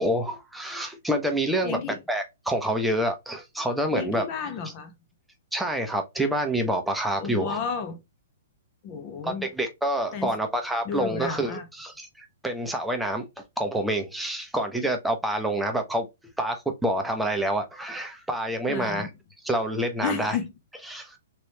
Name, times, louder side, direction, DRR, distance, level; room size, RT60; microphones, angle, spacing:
voice 1, 0.0-1.8 2.1-4.2 5.5-7.6 9.2-13.3 13.6-16.1 16.4-19.1 19.4-20.4 20.9-21.1, right 1 dB, 5° right, 0.7 m, -27 dB
voice 2, 1.6-2.0 3.9-4.9 7.2-8.0 8.8-9.5 10.1-10.3 10.8-11.6 18.7-19.1 20.0-20.5, left 6 dB, 40° left, 0.6 m, -32 dB
3.1 x 3.0 x 2.8 m
hypercardioid pair, 125°, 0 cm